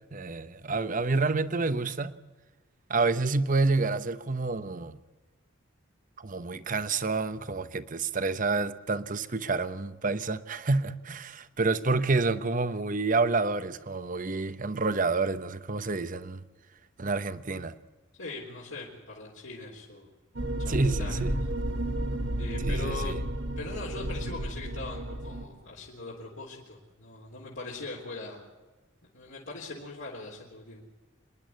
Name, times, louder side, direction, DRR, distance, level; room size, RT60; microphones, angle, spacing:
voice 1, 0.1-2.1 2.9-5.0 6.2-16.4 17.0-17.7 20.7-21.3 22.7-23.2, right 3 dB, 40° right, 0.9 m, -28 dB
voice 2, 18.2-20.1 20.6-21.2 22.4-23.2 23.6-28.4 29.1-30.8, left 3 dB, 70° left, 3.6 m, -41 dB
sound 1, 20.4-25.5, right 1 dB, 60° right, 1.6 m, -32 dB
26.5 x 11.0 x 9.4 m
head